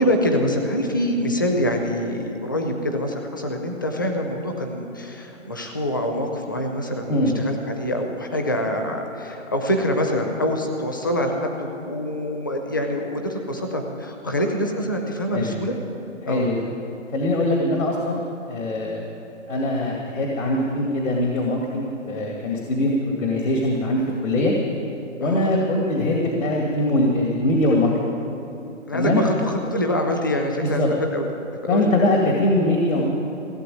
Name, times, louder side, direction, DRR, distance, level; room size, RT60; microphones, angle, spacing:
voice 1, 0.0-15.7 16.3-16.5 25.2-25.6 28.9-30.8 31.1-31.3 31.7-32.0, equal, 15° left, 3 dB, 0.6 m, -25 dB
voice 2, 16.2-16.6 17.1-18.2 18.5-19.0 19.5-24.6 25.2-27.9 28.9-29.2 30.6-30.9 31.7-33.1, left 1 dB, 75° left, -1 dB, 2.4 m, -22 dB
16.5 x 7.7 x 9.3 m, 2.8 s
hypercardioid pair, 170°, 39 cm